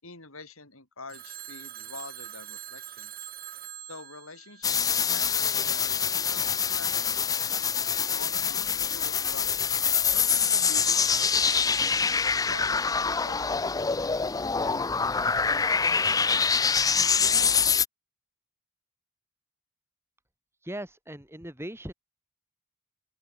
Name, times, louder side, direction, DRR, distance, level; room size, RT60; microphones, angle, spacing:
voice 1, 0.0-3.1 3.9-7.2 7.9-9.5 10.1-11.8 12.5-15.6, left 3 dB, 70° left, 6.9 m, -47 dB
Telephone, 1.1-5.3, right 11 dB, 45° right, 5.7 m, -43 dB
sound 1, 4.6-17.8, left 6 dB, 15° left, 0.5 m, -25 dB
voice 2, 20.6-21.9, right 1 dB, 10° right, 5.9 m, -38 dB
open air
head